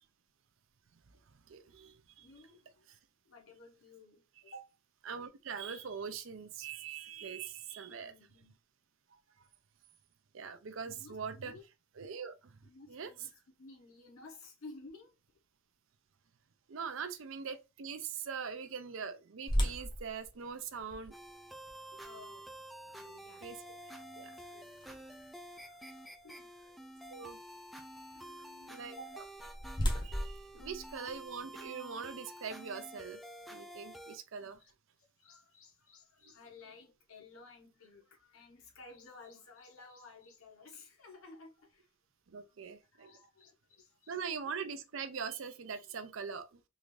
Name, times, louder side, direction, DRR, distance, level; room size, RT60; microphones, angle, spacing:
voice 1, 1.1-2.3 2.9-3.0 5.1-8.1 9.1-9.2 10.3-11.6 12.0-12.6 12.9-13.1 16.7-21.1 23.4-23.6 24.2-24.3 27.1-27.4 28.7-29.2 30.0-33.2 33.5-34.6 42.3-43.1 44.1-46.6, right 6 dB, 65° right, 0.5 m, -42 dB
voice 2, 2.2-2.8 3.2-4.8 7.8-8.5 10.8-11.6 12.6-15.2 21.8-22.5 22.9-23.5 24.2-26.8 28.1-29.3 30.6-30.9 34.6-34.7 35.2-41.9 42.3-44.2, left 2 dB, 80° left, 1.1 m, -55 dB
sound 1, 19.5-25.4 26.0-26.1 26.7-26.9 29.0-31.6, equal, 20° left, 0.7 m, -38 dB
sound 2, 21.1-34.2, right 1 dB, ahead, 0.3 m, -50 dB
3.7 x 2.6 x 3.1 m
head